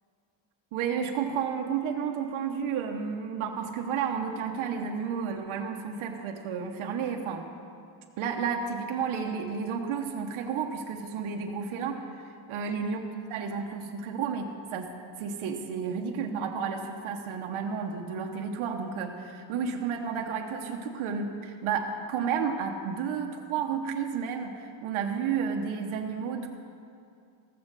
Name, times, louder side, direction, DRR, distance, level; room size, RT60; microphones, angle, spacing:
voice 1, 0.7-7.5 8.2-13.0 13.3-14.9 15.1-26.5, right 6 dB, 80° right, 3 dB, 1.1 m, -32 dB
14.5 x 7.4 x 6.5 m, 2.4 s
cardioid pair, 125°, 48 cm